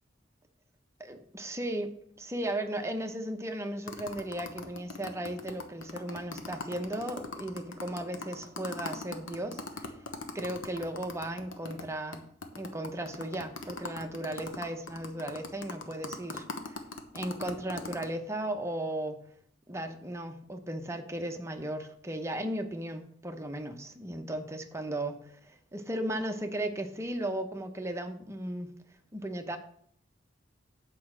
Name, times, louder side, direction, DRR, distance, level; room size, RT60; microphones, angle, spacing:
voice 1, 1.0-9.9 10.3-12.2 12.5-16.8 17.1-19.2 19.7-28.7 29.1-29.6, right 1 dB, 15° right, 5 dB, 0.8 m, -36 dB
sound 1, 3.9-11.8 12.1-12.2 12.4-18.1, left 3 dB, 85° left, 1.1 m, -40 dB
8.6 x 4.8 x 6.2 m, 0.65 s
head